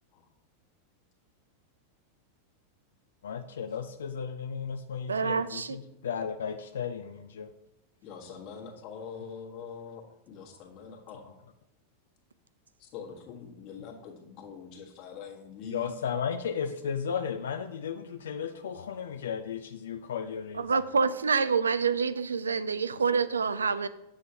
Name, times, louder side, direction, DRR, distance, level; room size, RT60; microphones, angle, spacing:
voice 1, 3.2-7.5 15.6-20.7, left 7 dB, 65° left, 8 dB, 0.4 m, -34 dB
voice 2, 5.1-5.8 20.5-23.9, right 5 dB, 75° right, 14 dB, 0.3 m, -27 dB
voice 3, 8.0-11.3 12.8-16.0, left 6 dB, 40° left, 1 dB, 1.4 m, -44 dB
7.6 x 6.3 x 2.8 m, 0.84 s
figure-of-eight pair, 90°, 0 cm